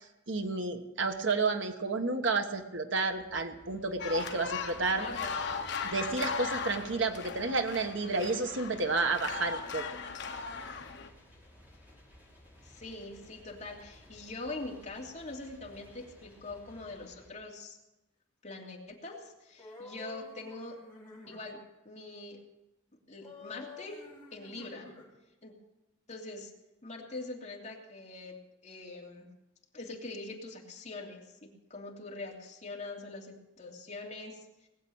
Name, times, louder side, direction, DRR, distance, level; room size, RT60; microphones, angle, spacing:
voice 1, 0.3-5.1 5.8-9.8, right 3 dB, 65° right, 5 dB, 1.4 m, -31 dB
sound 1, 3.1-17.3, left 1 dB, 10° right, 5.2 m, -57 dB
sound 2, 4.0-11.1, left 5 dB, 60° left, 1.3 m, -38 dB
voice 2, 5.0-5.4 12.6-17.8 18.4-20.8 21.3-21.6 21.8-22.4 23.1-24.0 24.3-24.9 25.4-25.5 26.1-26.5 26.8-28.4 28.6-29.3 29.7-34.4, left 2 dB, 35° left, -1 dB, 3.0 m, -43 dB
sound 3, 19.6-21.4 23.2-25.1, left 2 dB, 10° left, 5.8 m, -50 dB
20.0 x 7.7 x 8.7 m, 0.94 s
head